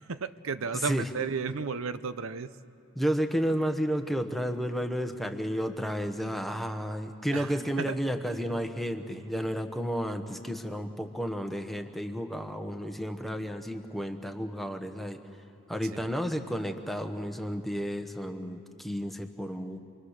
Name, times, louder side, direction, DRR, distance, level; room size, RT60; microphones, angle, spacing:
voice 1, 0.0-2.5 7.3-8.0 15.9-16.0, right 5 dB, 65° right, 13 dB, 0.6 m, -33 dB
voice 2, 0.7-1.1 2.9-15.2 15.7-19.8, equal, ahead, 5 dB, 1.0 m, -32 dB
28.0 x 22.5 x 6.6 m, 2.6 s
head